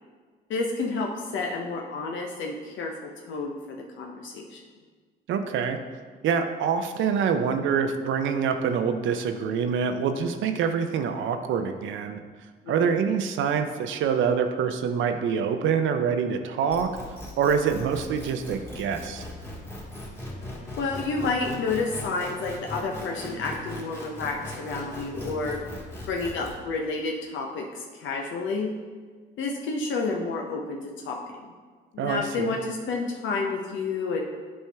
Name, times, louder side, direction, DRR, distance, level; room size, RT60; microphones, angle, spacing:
voice 1, 0.5-4.6 12.6-13.0 20.8-25.6 26.1-28.7 29.4-31.5 31.9-34.2, left 3 dB, 75° left, 0 dB, 0.7 m, -30 dB
voice 2, 5.3-5.8 6.2-12.2 12.7-16.9 17.4-19.2 32.0-32.5, right 6 dB, 75° right, 7 dB, 0.5 m, -25 dB
sound 1, 16.7-26.5, left 1 dB, 10° left, 1.8 m, -39 dB
8.6 x 4.4 x 3.4 m, 1.5 s
cardioid pair, 90°, 20 cm